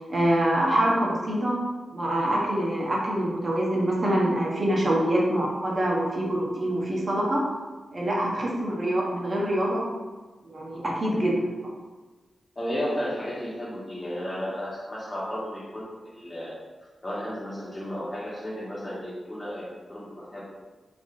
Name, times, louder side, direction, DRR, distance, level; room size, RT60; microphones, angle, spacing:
voice 1, 0.1-1.6 1.9-7.4 7.9-9.8 10.4-11.4, right 1 dB, 50° right, -3 dB, 0.7 m, -25 dB
voice 2, 12.5-20.4, equal, 30° left, -6 dB, 1.1 m, -33 dB
3.3 x 2.5 x 2.4 m, 1.3 s
cardioid pair, 45°, 0 cm